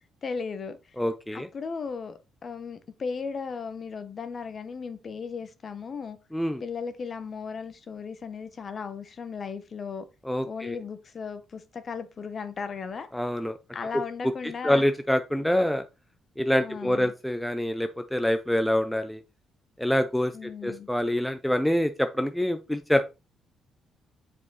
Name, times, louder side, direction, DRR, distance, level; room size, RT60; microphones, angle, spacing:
voice 1, 0.2-0.9 1.3-6.2 6.6-10.0 10.5-13.1 13.7-14.9 16.6-17.1 20.3-20.9, left 5 dB, 40° left, 1.1 m, -36 dB
voice 2, 1.0-1.5 6.3-6.6 10.3-10.8 13.1-13.6 14.2-14.3 14.6-15.8 16.4-19.2 19.8-23.0, left 1 dB, 5° left, 0.5 m, -26 dB
7.3 x 4.9 x 4.0 m
cardioid pair, 125°, 0 cm